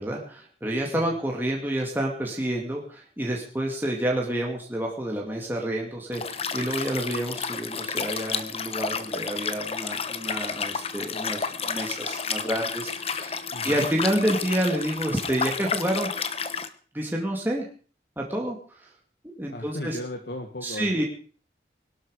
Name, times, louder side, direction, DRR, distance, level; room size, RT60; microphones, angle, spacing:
voice 1, 0.0-16.1 16.9-17.7 18.2-18.9 19.2-20.0 20.6-21.0, right 1 dB, 10° right, -1 dB, 2.5 m, -29 dB
Liquid, 6.1-16.7, left 5 dB, 35° left, 1.1 m, -31 dB
voice 2, 13.5-13.9 19.5-21.0, left 1 dB, 60° left, 3 dB, 2.0 m, -36 dB
22.0 x 12.0 x 5.0 m, 0.42 s
head